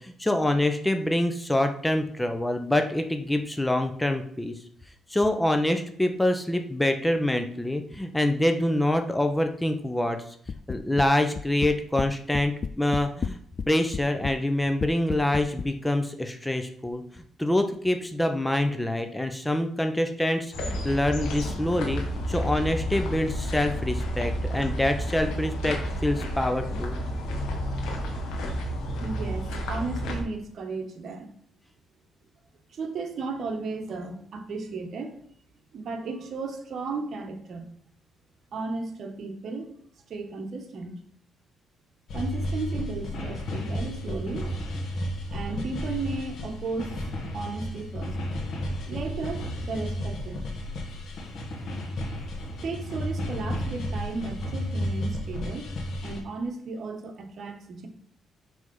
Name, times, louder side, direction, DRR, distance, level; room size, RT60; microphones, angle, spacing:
voice 1, 0.0-4.5 5.1-10.3 10.7-13.4 13.7-17.0 17.4-22.0 22.3-27.0, left 1 dB, 10° left, 6 dB, 0.7 m, -26 dB
sound 1, 10.5-11.1 11.4-12.1 12.3-13.7 13.9-14.4 14.8-15.7, left 6 dB, 40° left, 0.3 m, -31 dB
sound 2, 20.5-30.2, equal, 90° left, 1.5 m, -31 dB
voice 2, 29.0-31.3 32.7-35.2 35.7-37.7 38.5-39.7 40.1-40.9 42.1-44.5 45.3-47.0 47.3-48.2 48.9-50.4 52.6-55.7 56.0-57.9, right 3 dB, 60° right, 5 dB, 1.2 m, -34 dB
sound 3, 42.1-56.2, left 1 dB, 65° left, 1.4 m, -33 dB
6.3 x 3.5 x 5.4 m, 0.64 s
cardioid pair, 90°, 0 cm